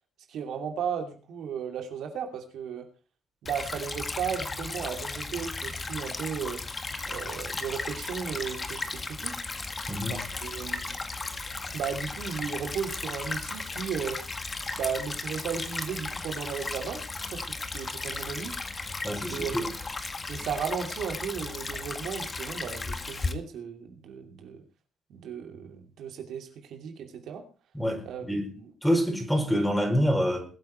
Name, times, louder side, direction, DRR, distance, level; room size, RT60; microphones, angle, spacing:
voice 1, 0.3-2.9 3.4-6.6 7.1-9.4 10.1-10.9 11.7-14.2 14.7-17.4 17.7-18.6 19.3-19.5 20.3-24.6 25.1-27.4 28.0-28.2 28.5-28.7, right 7 dB, 70° right, 4 dB, 2.7 m, -35 dB
Stream / Trickle dribble, 3.5-23.3, left 3 dB, 30° left, 1.8 m, -35 dB
voice 2, 9.9-10.2 19.0-19.7 27.7-28.5 28.8-30.5, equal, 5° left, 3 dB, 4.9 m, -26 dB
21.5 x 8.6 x 4.5 m, 0.37 s
supercardioid pair, 65°, 0 cm